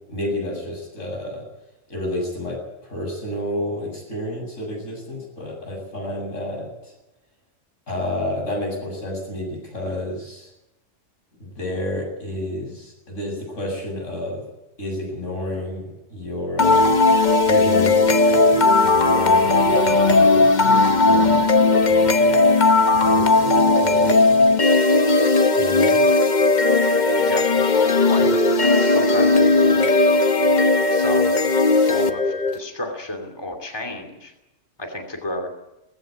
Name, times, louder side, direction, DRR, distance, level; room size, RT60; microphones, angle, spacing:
voice 1, 0.1-1.4 1.9-6.9 7.9-10.5 11.4-14.4 14.8-17.1 17.5-22.5 23.0-24.5 25.6-26.0, left 1 dB, 80° left, 1 dB, 8.1 m, -30 dB
sound 1, 16.6-32.6, left 3 dB, 40° left, 1.2 m, -17 dB
voice 2, 27.2-27.6 28.0-29.9 30.9-31.5 31.8-34.3 34.8-35.5, left 1 dB, 20° left, 3 dB, 2.8 m, -32 dB
18.5 x 16.0 x 9.7 m, 0.94 s
omnidirectional pair, 1.3 m